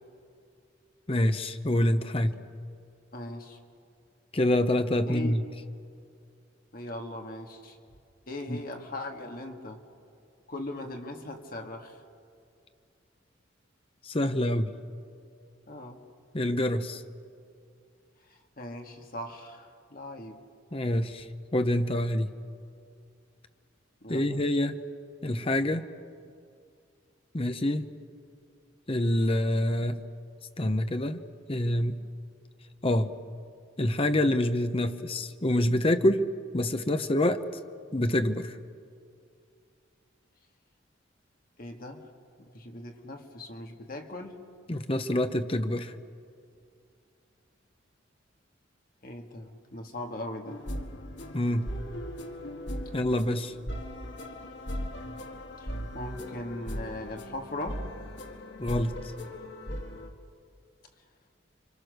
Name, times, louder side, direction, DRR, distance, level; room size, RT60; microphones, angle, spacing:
voice 1, 1.1-2.4 4.3-5.4 8.5-8.6 14.0-14.7 16.3-17.0 20.7-21.3 21.5-22.3 24.1-24.8 25.2-25.9 27.3-27.9 28.9-30.0 30.6-31.2 31.5-32.0 32.8-33.1 33.8-36.3 36.5-37.4 37.9-38.5 44.7-45.9 51.3-51.7 52.9-53.5 58.6-59.0, left 1 dB, 30° left, 8 dB, 0.9 m, -26 dB
voice 2, 3.1-3.6 5.0-5.4 6.7-7.8 8.3-9.8 10.5-12.0 15.7-16.0 18.3-20.4 24.0-24.4 41.6-42.1 42.4-44.4 49.0-50.6 55.0-55.2 55.6-57.9, left 1 dB, 45° left, 3 dB, 2.1 m, -39 dB
sound 1, 50.5-60.1, equal, 65° left, 1.9 m, -38 dB
30.0 x 25.0 x 6.6 m, 2.4 s
head